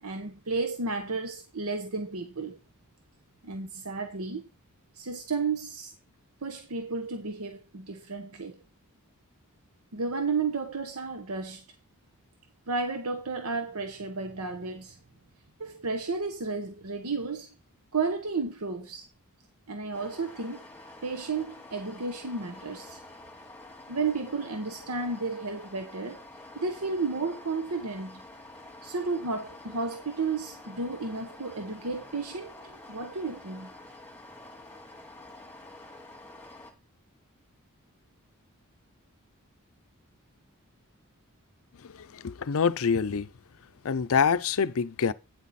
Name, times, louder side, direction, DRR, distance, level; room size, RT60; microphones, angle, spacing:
voice 1, 0.0-2.6 3.4-4.4 4.9-5.9 6.4-8.6 9.9-11.6 12.7-15.0 15.6-17.5 17.9-19.1 19.7-20.6 21.0-23.0 23.9-26.2 26.5-28.2 28.8-33.7, right 4 dB, 75° right, 1.1 m, -32 dB
sound 1, 19.9-36.7, left 2 dB, 10° left, 2.3 m, -48 dB
voice 2, 41.8-43.3 43.8-45.1, left 6 dB, 65° left, 0.5 m, -26 dB
9.2 x 7.3 x 4.2 m
head